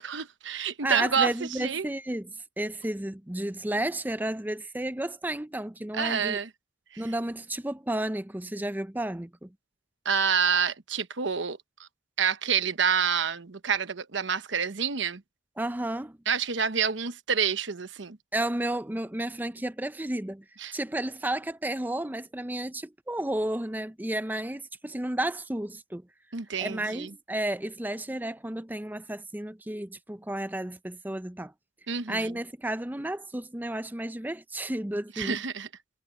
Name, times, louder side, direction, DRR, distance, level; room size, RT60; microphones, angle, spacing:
voice 1, 0.0-1.9 5.9-6.5 6.9-7.0 10.0-11.9 12.2-15.2 16.3-18.2 20.6-20.7 26.3-27.1 31.9-32.3 35.2-35.7, right 6 dB, 75° right, 1.0 m, -28 dB
voice 2, 0.8-6.4 7.0-9.5 15.6-16.2 18.3-20.4 20.7-26.0 26.6-31.5 32.1-35.4, right 1 dB, 10° right, 0.5 m, -32 dB
head